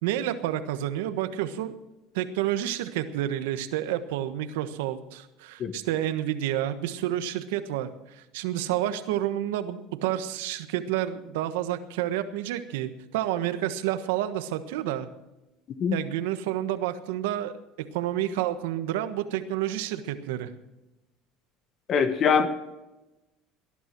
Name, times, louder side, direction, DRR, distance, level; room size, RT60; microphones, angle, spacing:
voice 1, 0.0-1.7 2.1-15.1 15.9-17.5 17.9-20.5, right 12 dB, 85° right, 10 dB, 1.3 m, -29 dB
voice 2, 21.9-22.5, left 6 dB, 40° left, 10 dB, 1.4 m, -22 dB
18.5 x 11.0 x 6.1 m, 1.0 s
supercardioid pair, 115°, 0 cm